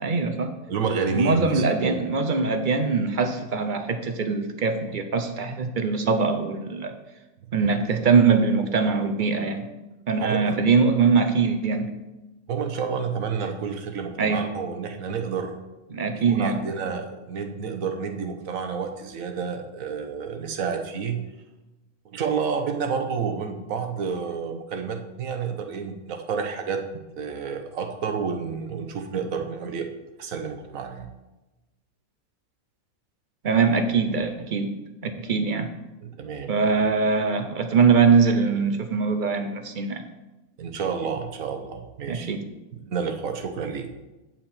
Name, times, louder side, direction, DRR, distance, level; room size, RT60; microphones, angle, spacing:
voice 1, 0.0-0.5 1.1-6.9 7.5-9.7 10.1-11.9 14.2-14.5 15.9-16.6 33.4-34.7 35.0-35.7 36.5-40.0 42.1-42.4, right 5 dB, 50° right, 7 dB, 0.6 m, -22 dB
voice 2, 0.7-2.0 10.2-10.6 12.5-15.5 16.1-21.2 22.0-26.8 27.2-29.9 30.2-31.1 36.0-36.5 40.6-42.3 42.7-43.9, right 6 dB, 70° right, 5 dB, 1.3 m, -30 dB
9.1 x 5.9 x 4.3 m, 1.1 s
omnidirectional pair, 1.5 m